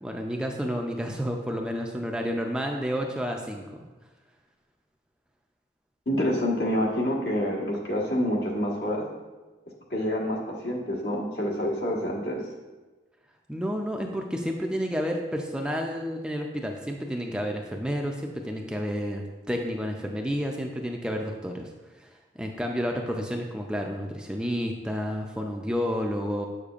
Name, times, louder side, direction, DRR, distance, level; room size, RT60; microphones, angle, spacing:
voice 1, 0.0-3.9 13.5-21.7 22.0-22.1 22.4-26.5, equal, 5° right, 2 dB, 0.4 m, -30 dB
voice 2, 6.1-9.1 9.9-10.4 10.6-12.4, equal, 70° left, -3 dB, 1.4 m, -27 dB
7.7 x 6.6 x 2.4 m, 1.3 s
head